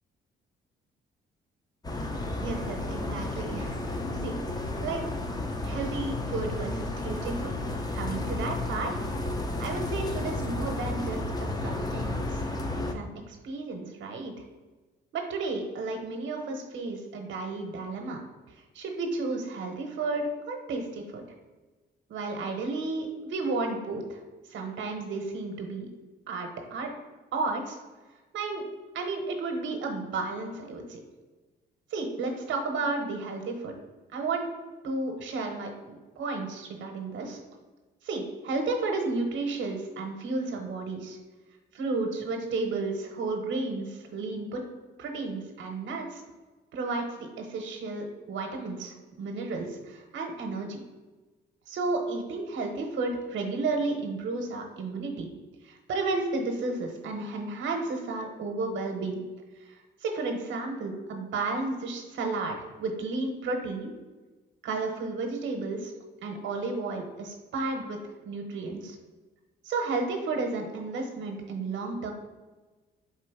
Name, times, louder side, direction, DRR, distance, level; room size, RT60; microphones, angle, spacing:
sound 1, 1.8-12.9, left 2 dB, 20° left, 0.5 m, -32 dB
voice 1, 2.4-3.7 4.2-4.4 4.8-5.1 5.6-7.5 7.9-9.0 9.6-12.4 12.9-14.3 15.1-18.2 18.7-21.2 22.1-24.2 24.5-25.9 26.3-26.9 27.3-27.8 28.3-28.6 28.9-31.0 31.9-33.7 34.1-34.5 34.8-37.4 38.0-41.2 41.7-44.7 45.0-46.2 46.7-50.8 51.7-55.3 55.6-59.2 59.7-63.9 64.6-65.9 66.2-68.0 68.2-69.0 69.6-72.1, right 3 dB, 70° right, 3 dB, 0.8 m, -32 dB
3.7 x 3.1 x 4.6 m, 1.2 s
cardioid pair, 90°, 20 cm